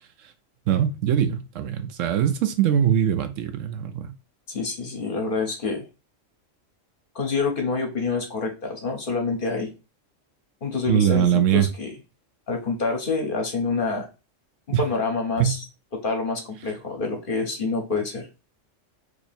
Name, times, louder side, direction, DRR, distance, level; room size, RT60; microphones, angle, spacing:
voice 1, 0.7-4.1 10.9-11.7 14.7-14.8 15.4-15.5, right 9 dB, 80° right, 1.0 m, -22 dB
voice 2, 4.5-5.9 7.1-9.7 10.6-11.9 12.5-14.1 14.8-15.6 15.9-18.3, left 4 dB, 50° left, 0.9 m, -27 dB
3.0 x 2.7 x 4.0 m
omnidirectional pair, 1.3 m